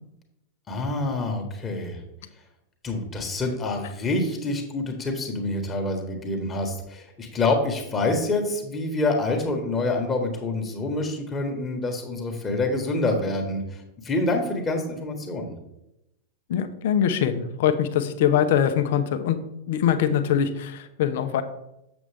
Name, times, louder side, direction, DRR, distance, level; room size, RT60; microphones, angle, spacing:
voice 1, 0.7-2.0 2.8-15.5, left 2 dB, 20° left, 3 dB, 1.5 m, -27 dB
voice 2, 16.5-19.4 19.7-21.4, left 9 dB, 55° left, 10 dB, 0.7 m, -23 dB
7.3 x 7.0 x 3.4 m, 0.86 s
figure-of-eight pair, 90°, 0 cm